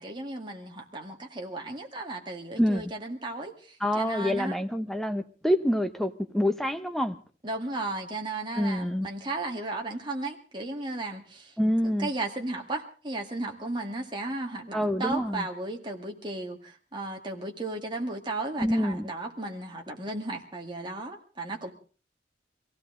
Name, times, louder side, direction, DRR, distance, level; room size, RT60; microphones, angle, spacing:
voice 1, 0.0-3.5 4.0-4.6 7.4-11.5 11.8-21.7, right 2 dB, 25° right, 2.1 m, -35 dB
voice 2, 2.6-2.9 3.8-7.2 8.5-9.1 11.6-12.1 14.7-15.5 18.6-19.1, equal, ahead, 0.9 m, -27 dB
23.5 x 16.0 x 3.8 m
head